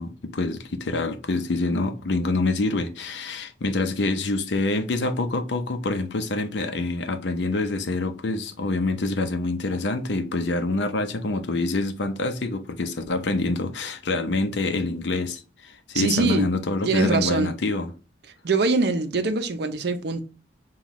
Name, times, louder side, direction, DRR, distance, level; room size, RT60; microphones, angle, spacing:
voice 1, 0.0-17.9, left 2 dB, 75° left, 0.6 m, -26 dB
voice 2, 15.9-16.5 16.8-17.5 18.4-20.2, right 3 dB, 65° right, 0.5 m, -23 dB
5.6 x 2.3 x 3.0 m
head